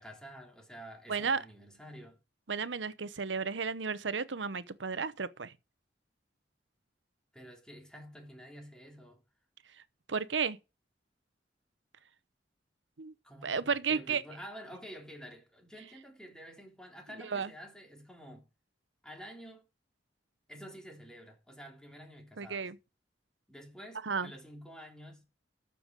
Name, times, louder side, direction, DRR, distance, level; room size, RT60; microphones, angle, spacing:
voice 1, 0.0-2.2 7.3-9.2 13.2-18.5 19.0-19.6 20.5-22.7 23.5-25.2, equal, 5° left, 3.3 m, -49 dB
voice 2, 1.1-1.4 2.5-5.5 10.1-10.6 13.0-13.1 13.4-14.2 17.2-17.5 22.4-22.8 24.0-24.3, right 5 dB, 90° right, 0.9 m, -33 dB
12.0 x 7.1 x 5.1 m
head